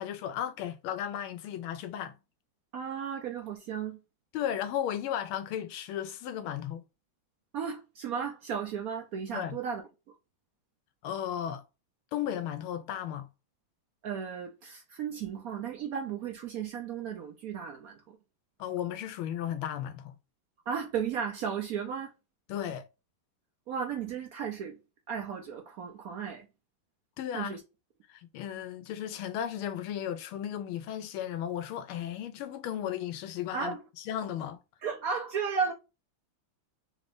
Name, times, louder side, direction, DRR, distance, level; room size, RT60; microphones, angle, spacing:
voice 1, 0.0-2.1 4.3-6.8 9.3-9.6 11.0-11.6 12.1-13.3 18.6-20.1 22.5-22.9 27.2-27.6 28.1-33.7 34.1-34.6, left 10 dB, 80° left, 1.5 m, -35 dB
voice 2, 2.7-4.0 7.5-9.8 14.0-18.0 20.7-22.1 23.7-24.8 25.1-26.5 27.3-27.6 33.5-33.8 34.8-35.7, right 7 dB, 85° right, 0.8 m, -34 dB
3.8 x 2.5 x 3.3 m
omnidirectional pair, 2.3 m